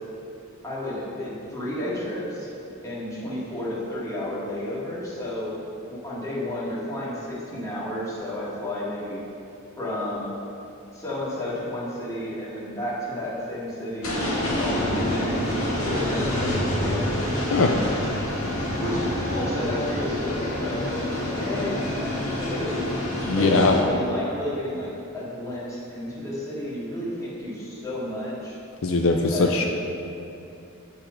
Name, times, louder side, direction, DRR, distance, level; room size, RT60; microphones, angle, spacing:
voice 1, 0.6-2.5 2.8-5.5 5.9-9.2 9.8-10.3 10.9-14.2 14.6-15.4 15.8-18.3 18.8-22.9 23.4-28.6 29.1-29.6, left 1 dB, 15° left, -8 dB, 1.9 m, -31 dB
sound 1, 14.0-23.8, left 1 dB, 85° left, 1.8 m, -27 dB
voice 2, 23.3-23.7 28.8-29.7, left 3 dB, 65° left, 2 dB, 0.5 m, -20 dB
8.8 x 4.2 x 5.1 m, 2.6 s
head